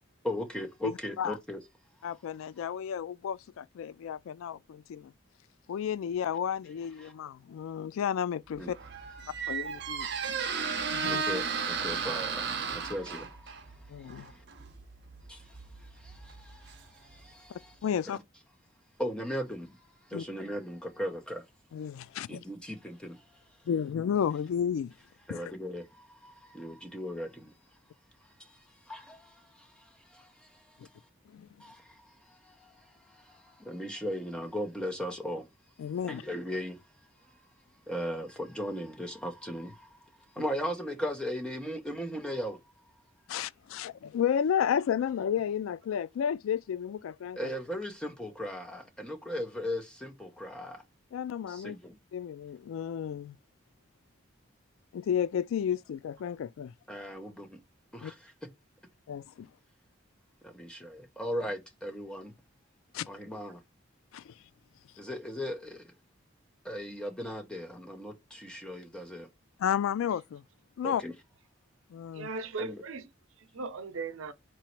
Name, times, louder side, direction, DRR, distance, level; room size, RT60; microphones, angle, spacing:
voice 1, 0.2-1.6 8.6-8.7 11.1-11.4 11.8-13.3 19.0-19.7 20.1-21.4 22.3-23.2 25.3-25.8 26.5-27.4 28.9-29.2 31.6-31.8 33.7-35.4 36.1-36.7 37.9-39.7 40.4-42.6 47.4-50.8 51.6-51.8 56.9-57.5 58.0-58.1 60.6-62.3 63.1-63.6 65.0-65.8 66.7-69.3 70.8-71.1 72.6-72.7, equal, 5° left, 0.9 m, -36 dB
voice 2, 0.8-1.4 2.0-5.1 5.7-8.8 9.5-10.1 10.9-11.2 13.9-14.3 17.5-18.2 20.1-20.2 21.7-22.4 23.7-24.9 25.3-25.5 30.8-30.9 31.3-31.5 35.8-36.2 43.3-47.5 51.1-51.8 52.1-53.4 54.9-56.7 58.0-58.1 59.1-59.5 62.9-63.1 64.1-64.3 69.6-70.4 70.8-71.0 71.9-72.3, left 8 dB, 85° left, 0.3 m, -32 dB
Squeak, 8.6-17.3, right 5 dB, 55° right, 0.7 m, -35 dB
voice 3, 72.1-73.1 73.4-74.3, right 3 dB, 90° right, 0.7 m, -38 dB
3.8 x 3.0 x 4.4 m
head